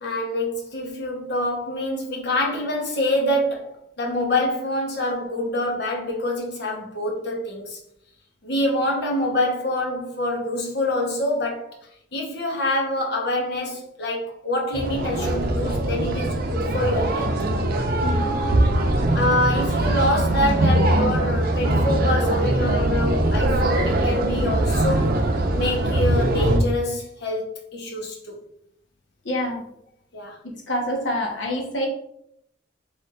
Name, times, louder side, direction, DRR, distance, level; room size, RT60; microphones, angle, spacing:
voice 1, 0.0-7.8 8.4-11.7 12.1-17.3 19.1-25.1 25.5-28.4 30.1-30.4, left 1 dB, 65° left, 0 dB, 1.0 m, -26 dB
sound 1, 14.7-26.6, right 1 dB, 55° right, 0.6 m, -21 dB
voice 2, 18.0-18.4 29.2-29.6 30.7-31.9, left 1 dB, 85° left, 0 dB, 1.2 m, -26 dB
4.4 x 3.5 x 2.5 m, 0.75 s
head